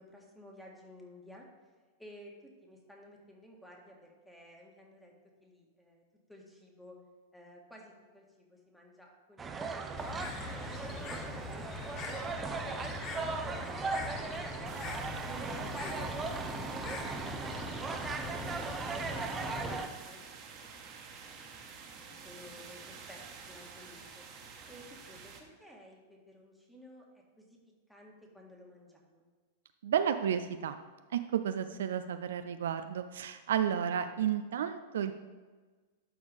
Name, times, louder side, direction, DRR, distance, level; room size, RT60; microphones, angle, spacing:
voice 1, 0.0-1.5 2.0-5.1 5.4-6.0 6.3-7.0 7.3-12.9 13.2-13.9 14.3-14.8 15.3-19.2 19.5-20.2 20.6-20.8 21.2-24.2 24.7-27.6 27.9-29.3, equal, 5° left, -1 dB, 1.7 m, -54 dB
sound 1, 9.4-19.9, right 4 dB, 20° right, 0.7 m, -38 dB
Bird, 10.0-19.8, left 5 dB, 35° left, 0.9 m, -43 dB
sound 2, 14.6-25.4, right 5 dB, 35° right, 1.3 m, -49 dB
voice 2, 29.8-30.8 31.1-35.1, right 9 dB, 70° right, 9 dB, 0.4 m, -32 dB
11.5 x 4.7 x 3.5 m, 1.4 s
hypercardioid pair, 100°, 0 cm